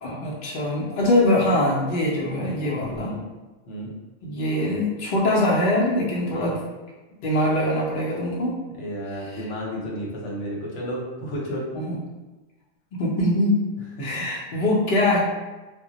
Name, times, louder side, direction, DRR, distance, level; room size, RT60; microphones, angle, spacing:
voice 1, 0.0-3.2 4.2-6.7 7.2-8.5 11.7-12.0 12.9-13.6 14.0-15.2, left 1 dB, 55° left, -4 dB, 0.7 m, -23 dB
voice 2, 8.7-11.7 14.0-14.3, equal, 80° left, -4 dB, 1.0 m, -32 dB
2.2 x 2.0 x 3.8 m, 1.1 s
omnidirectional pair, 1.2 m